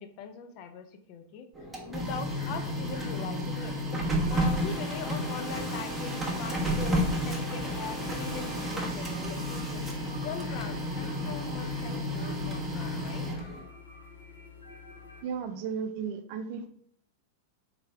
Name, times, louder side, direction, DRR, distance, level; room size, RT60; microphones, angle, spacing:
voice 1, 0.0-1.5 1.9-3.8 4.3-13.6, left 7 dB, 45° left, 6 dB, 0.5 m, -41 dB
Printer, 1.6-13.6, equal, 5° right, 1.1 m, -32 dB
sound 1, 4.3-8.7, left 1 dB, 20° left, 1.3 m, -42 dB
sound 2, 6.3-15.2, left 4 dB, 85° left, 1.0 m, -48 dB
voice 2, 15.2-16.7, right 6 dB, 50° right, 8 dB, 0.5 m, -34 dB
3.7 x 3.2 x 3.3 m, 0.64 s
figure-of-eight pair, 95°, 0 cm